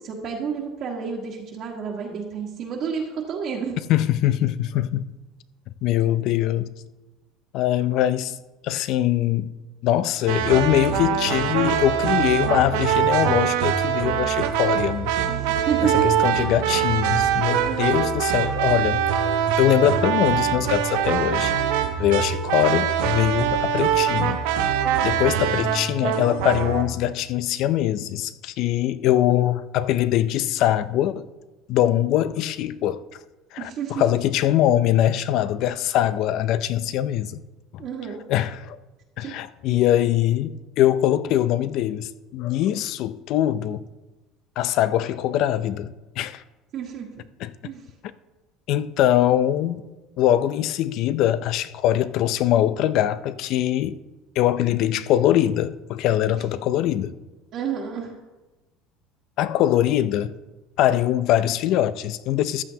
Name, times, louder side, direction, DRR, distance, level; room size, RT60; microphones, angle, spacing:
voice 1, 0.0-3.8 15.3-16.2 17.6-18.0 33.6-34.0 37.8-38.2 39.2-39.3 39.7-39.8 46.7-47.1 47.6-47.9 57.5-58.1, right 7 dB, 40° right, 1.5 m, -30 dB
voice 2, 3.9-5.1 5.8-6.7 7.5-8.4 8.6-9.5 9.8-15.1 15.8-19.0 19.6-21.5 22.0-24.4 25.0-31.3 31.7-33.0 33.5-37.4 37.7-37.8 38.3-38.8 39.2-43.9 44.6-46.4 47.4-47.5 48.7-49.9 50.2-54.0 54.4-57.2 59.4-60.4 60.8-62.6, left 12 dB, 55° left, 0.4 m, -22 dB
sound 1, 10.3-26.8, right 9 dB, 90° right, 0.9 m, -23 dB
14.5 x 10.5 x 2.8 m
cardioid pair, 160°, 0 cm